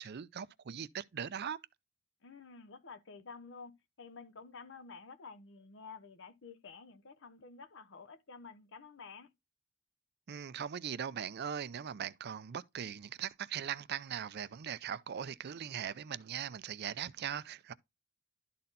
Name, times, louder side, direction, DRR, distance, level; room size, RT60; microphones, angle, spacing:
voice 1, 0.0-1.6 10.3-17.7, right 8 dB, 50° right, 0.5 m, -40 dB
voice 2, 2.2-9.3, left 4 dB, 65° left, 0.9 m, -51 dB
12.0 x 4.2 x 4.0 m
head